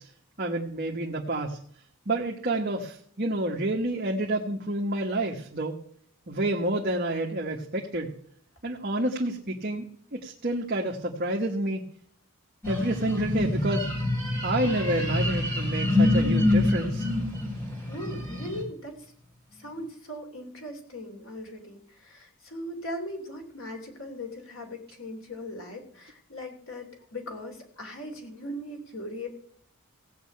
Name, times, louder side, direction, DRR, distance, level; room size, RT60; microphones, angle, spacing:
voice 1, 0.4-1.6 2.1-5.7 6.3-8.1 8.6-9.9 10.1-11.8 12.7-13.9 14.4-17.1, right 1 dB, 45° right, 0 dB, 1.3 m, -29 dB
sound 1, 12.6-18.6, left 2 dB, 10° left, 4.0 m, -26 dB
voice 2, 17.9-19.0 19.6-29.3, left 1 dB, 70° left, 3 dB, 3.1 m, -39 dB
16.5 x 5.6 x 8.5 m, 0.64 s
head